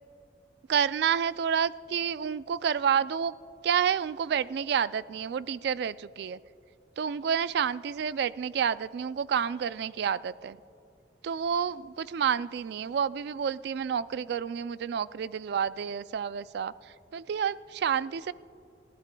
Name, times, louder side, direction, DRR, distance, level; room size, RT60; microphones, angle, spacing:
voice 1, 0.7-3.4 3.6-6.4 7.0-10.6 11.2-18.3, right 7 dB, 65° right, 16 dB, 0.3 m, -29 dB
21.5 x 15.5 x 2.2 m, 2.7 s
head